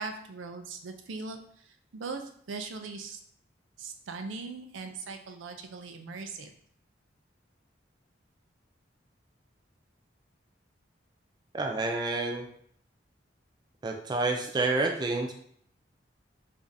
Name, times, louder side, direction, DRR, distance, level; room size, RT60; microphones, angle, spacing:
voice 1, 0.0-1.4 1.6-3.2 3.8-6.5, right 4 dB, 90° right, 5 dB, 0.5 m, -40 dB
voice 2, 11.5-12.5 13.8-15.3, right 3 dB, 20° right, 2 dB, 0.3 m, -29 dB
5.0 x 2.6 x 2.6 m, 0.64 s
head